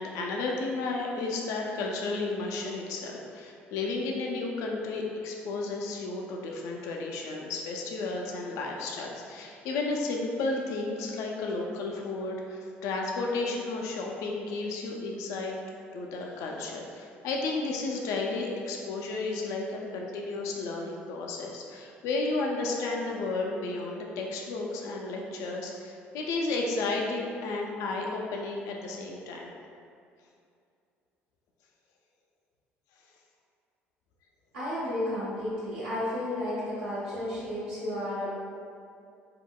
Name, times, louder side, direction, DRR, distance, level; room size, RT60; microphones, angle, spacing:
voice 1, 0.0-15.5 15.9-29.5, left 3 dB, 70° left, 0 dB, 0.3 m, -33 dB
voice 2, 34.5-38.3, left 1 dB, 90° right, -11 dB, 1.1 m, -32 dB
3.5 x 2.0 x 2.2 m, 2.5 s
hypercardioid pair, 60°, 6 cm